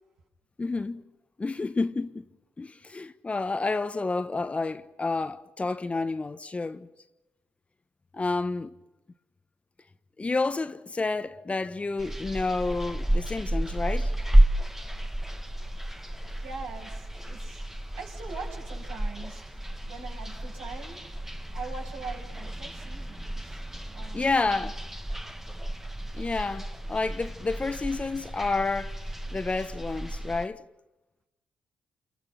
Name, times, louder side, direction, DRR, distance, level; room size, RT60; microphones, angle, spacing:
voice 1, 0.6-1.0 1.4-2.3 2.6-6.9 8.1-8.7 10.2-14.1 24.1-24.8 26.1-30.6, left 3 dB, 30° left, 1.3 m, -30 dB
sound 1, 12.0-30.5, right 1 dB, 10° right, 1.4 m, -30 dB
voice 2, 15.9-24.6 25.3-26.3, right 4 dB, 85° right, 6.9 m, -44 dB
28.5 x 28.0 x 5.9 m
supercardioid pair, 55°, 4 cm